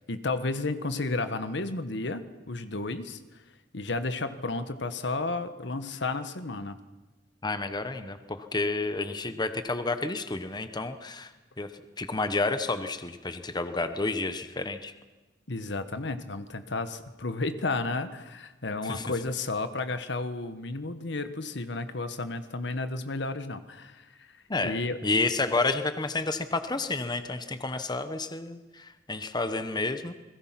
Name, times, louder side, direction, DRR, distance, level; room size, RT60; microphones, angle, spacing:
voice 1, 0.1-3.2 3.7-6.8 15.5-24.3 24.6-25.0, left 3 dB, 70° left, 10 dB, 1.4 m, -32 dB
voice 2, 7.4-11.7 12.0-14.9 18.8-19.0 24.5-24.8 25.0-30.1, left 3 dB, 25° left, 9 dB, 1.1 m, -30 dB
29.0 x 21.0 x 5.9 m, 1.2 s
head